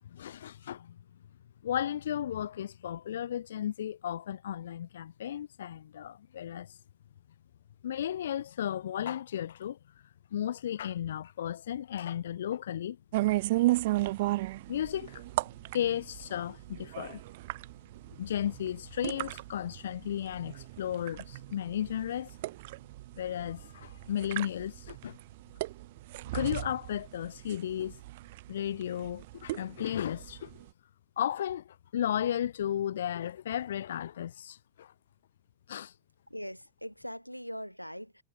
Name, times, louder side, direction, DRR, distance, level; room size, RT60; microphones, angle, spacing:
voice 1, 0.1-1.0 1.6-6.8 7.8-9.8 10.3-13.0 13.3-13.4 14.7-15.2 15.7-17.2 18.2-22.3 23.2-25.2 26.3-28.0 28.5-30.5 31.2-34.9 35.7-35.9, left 10 dB, 60° left, 0.4 m, -34 dB
sound 1, 13.1-30.7, right 18 dB, 50° right, 0.6 m, -35 dB
voice 2, 36.3-38.2, equal, 90° left, 0.8 m, -41 dB
figure-of-eight pair, 90°, 0 cm